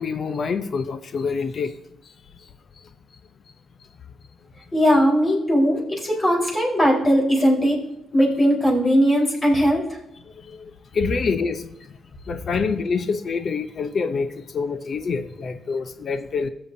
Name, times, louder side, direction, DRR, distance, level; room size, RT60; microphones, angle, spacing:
voice 1, 0.0-1.7 10.5-11.7 12.3-16.5, left 5 dB, 50° left, 10 dB, 0.6 m, -26 dB
voice 2, 4.7-7.8 8.1-10.0, equal, 30° left, -3 dB, 4.1 m, -19 dB
15.5 x 7.0 x 2.7 m, 0.83 s
cardioid pair, 85°, 0 cm